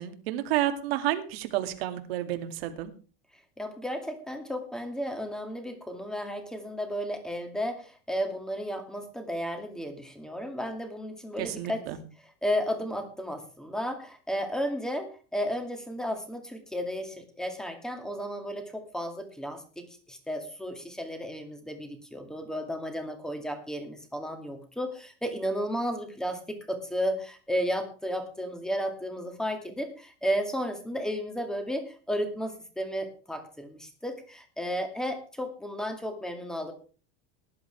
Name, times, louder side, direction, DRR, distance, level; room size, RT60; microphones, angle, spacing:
voice 1, 0.0-2.9 11.4-12.0, right 13 dB, 80° right, 7 dB, 2.3 m, -30 dB
voice 2, 3.6-11.8 12.4-36.7, equal, ahead, 5 dB, 2.2 m, -33 dB
19.0 x 11.0 x 3.4 m, 0.37 s
supercardioid pair, 160°, 30 cm